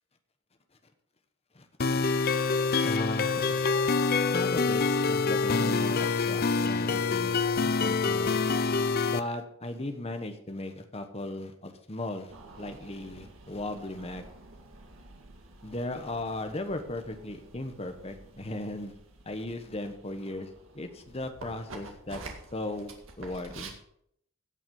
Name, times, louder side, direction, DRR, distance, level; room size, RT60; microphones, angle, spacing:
sound 1, 1.8-9.2, left 4 dB, 50° left, 0.6 m, -26 dB
voice 1, 2.8-3.4 4.3-8.4 9.1-12.3 12.6-14.3 15.6-18.9 19.2-20.5 20.7-22.2 22.5-23.7, left 1 dB, 30° left, 7 dB, 1.2 m, -37 dB
sound 2, 12.3-23.7, right 3 dB, 75° right, 2.0 m, -49 dB
17.0 x 6.0 x 5.4 m, 0.70 s
head